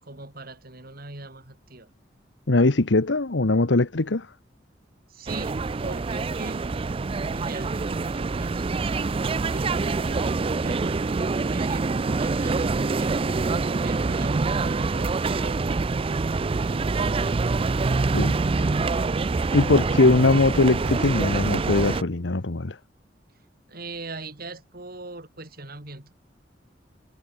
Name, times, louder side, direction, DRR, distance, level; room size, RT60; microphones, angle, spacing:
voice 1, 0.0-1.9 5.1-6.7 7.3-8.7 9.4-11.0 11.3-13.2 13.8-16.2 23.7-26.1, right 2 dB, 55° right, 4.2 m, -41 dB
voice 2, 2.5-4.3 18.1-18.6 19.5-22.8, left 2 dB, 85° left, 1.2 m, -21 dB
sound 1, 5.3-22.0, right 3 dB, 30° right, 0.4 m, -25 dB
head